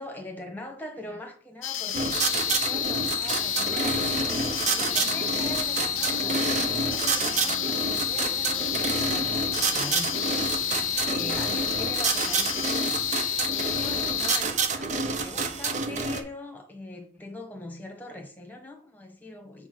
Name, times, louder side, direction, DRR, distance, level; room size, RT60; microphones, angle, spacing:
voice 1, 0.0-9.4 9.6-10.2 10.7-13.0 13.7-19.7, left 1 dB, 10° left, 1.2 m, -42 dB
sound 1, 1.6-14.4, left 10 dB, 75° left, 0.7 m, -29 dB
sound 2, 1.9-16.2, right 4 dB, 35° right, 0.7 m, -28 dB
sound 3, 4.7-10.9, right 4 dB, 65° right, 1.6 m, -49 dB
7.1 x 3.4 x 6.0 m
head